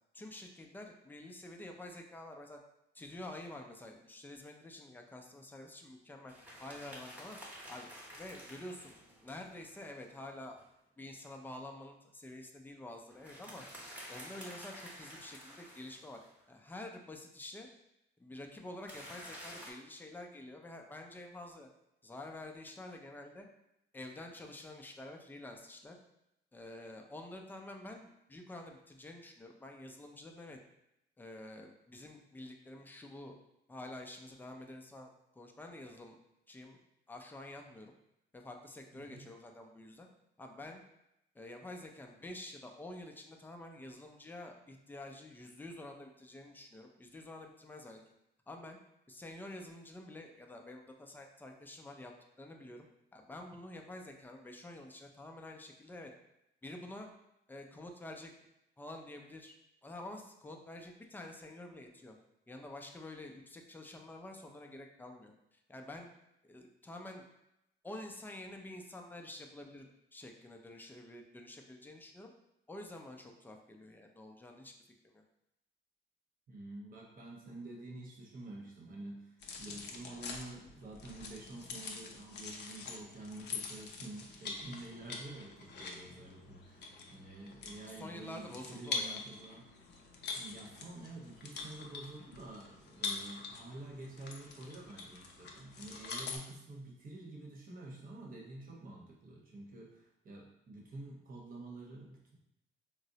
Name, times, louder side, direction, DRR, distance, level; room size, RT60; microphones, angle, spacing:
voice 1, 0.1-2.6 2.9-6.3 6.6-7.9 8.2-8.9 9.2-10.6 11.0-13.6 14.1-16.2 16.5-17.7 18.2-21.7 22.0-23.5 23.9-26.0 26.5-30.6 31.2-33.4 33.7-36.2 36.5-36.8 37.1-37.9 38.3-40.1 40.4-40.8 41.3-48.0 48.5-48.8 49.1-52.9 53.1-56.1 56.6-57.1 57.5-58.3 58.8-59.6 59.8-62.1 62.5-66.1 66.4-67.3 67.8-72.3 72.7-74.7 75.0-75.2 87.9-89.2, left 1 dB, 10° left, 2 dB, 0.4 m, -48 dB
sound 1, 6.3-10.6 13.1-16.4 18.9-19.7, equal, 5° right, 0.8 m, -51 dB
voice 2, 38.9-39.3 76.5-89.7 90.3-102.4, right 2 dB, 45° right, -1 dB, 0.8 m, -49 dB
sound 2, 79.4-96.4, left 4 dB, 60° left, 0.5 m, -45 dB
3.7 x 2.0 x 2.7 m, 0.85 s
cardioid pair, 90°, 20 cm